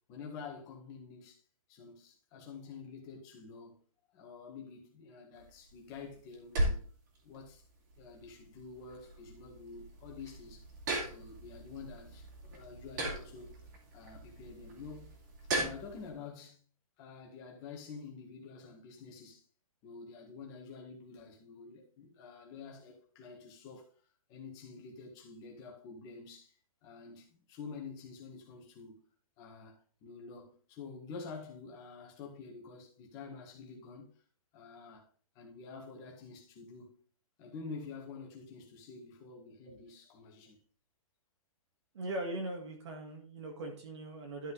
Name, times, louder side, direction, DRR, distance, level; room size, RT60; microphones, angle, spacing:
voice 1, 0.1-1.4 1.7-3.8 4.1-6.8 7.2-7.6 8.0-10.7 11.0-13.5 13.9-15.1 15.5-16.6 17.0-19.4 19.8-23.9 24.3-29.1 29.4-34.2 34.5-35.1 35.3-37.0 37.4-40.6, left 5 dB, 20° left, 1.7 m, -48 dB
sound 1, 5.3-16.1, right 1 dB, 30° right, 2.6 m, -39 dB
voice 2, 41.9-44.5, right 1 dB, 50° right, 2.0 m, -40 dB
12.0 x 5.3 x 4.0 m
hypercardioid pair, 170°, 19 cm